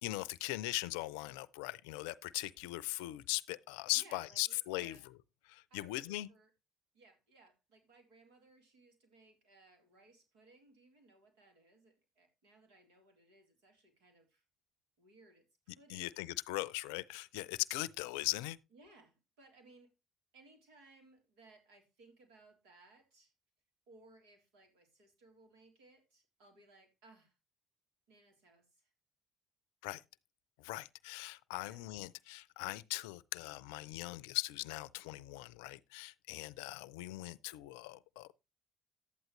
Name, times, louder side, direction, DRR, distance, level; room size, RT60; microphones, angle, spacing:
voice 1, 0.0-5.0 5.5-6.3 15.9-18.6 29.8-30.0 30.6-38.3, left 19 dB, 80° left, 0.5 m, -40 dB
voice 2, 3.9-5.1 5.7-6.5 6.9-14.4 15.0-16.3 18.7-19.9 20.3-23.3 23.9-27.4 28.1-28.9 31.5-31.8, right 2 dB, 75° right, 3.4 m, -63 dB
12.0 x 9.2 x 3.2 m
hypercardioid pair, 50°, 0 cm